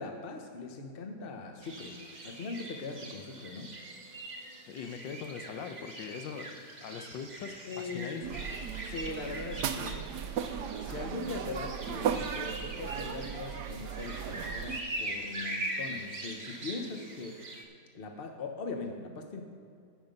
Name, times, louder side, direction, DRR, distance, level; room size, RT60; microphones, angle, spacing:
voice 1, 0.0-3.7 7.7-8.1 8.8-10.1 10.8-17.4 17.9-19.4, left 3 dB, 40° left, 4 dB, 0.9 m, -40 dB
sound 1, 1.6-17.6, right 1 dB, 30° right, 1.0 m, -42 dB
voice 2, 4.7-8.3, left 6 dB, 85° left, 8 dB, 1.4 m, -41 dB
sound 2, 8.2-14.8, right 8 dB, 70° right, 1.2 m, -36 dB
15.5 x 5.8 x 5.2 m, 2.4 s
omnidirectional pair, 1.9 m